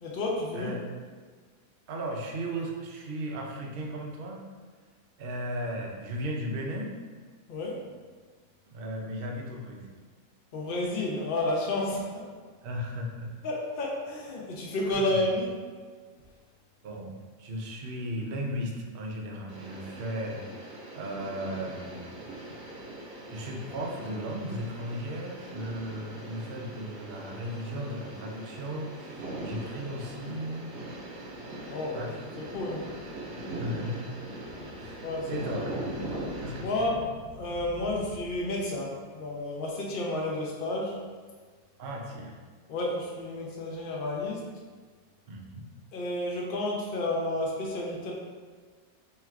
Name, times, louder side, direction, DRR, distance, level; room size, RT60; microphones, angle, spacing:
voice 1, 0.0-0.7 7.5-7.7 10.5-12.1 13.4-15.6 31.6-32.0 32.4-32.8 35.0-35.4 36.6-41.0 42.7-44.4 45.9-48.1, left 1 dB, 75° left, -3 dB, 0.5 m, -31 dB
voice 2, 1.9-4.5 5.2-6.9 8.7-9.9 12.6-13.3 14.9-15.2 16.8-22.1 23.3-30.7 31.9-32.2 33.6-34.1 34.8-35.8 36.4-37.0 41.8-42.3 45.3-45.6, equal, 90° right, -1 dB, 0.5 m, -36 dB
sound 1, 19.5-36.7, right 1 dB, 50° right, 0.9 m, -41 dB
3.3 x 2.4 x 4.4 m, 1.5 s
omnidirectional pair, 1.7 m